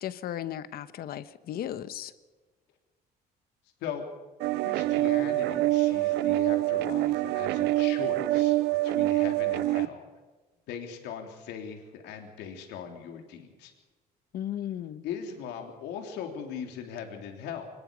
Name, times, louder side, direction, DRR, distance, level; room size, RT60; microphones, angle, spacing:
voice 1, 0.0-2.1 14.3-15.0, left 11 dB, 65° left, 14 dB, 1.2 m, -35 dB
sound 1, 4.4-9.9, right 17 dB, 80° right, 0.7 m, -25 dB
voice 2, 4.5-8.6 8.8-10.1 10.7-13.7 15.0-17.7, left 7 dB, 90° left, 4 dB, 3.5 m, -39 dB
24.0 x 21.0 x 5.4 m, 1.3 s
cardioid pair, 110°, 17 cm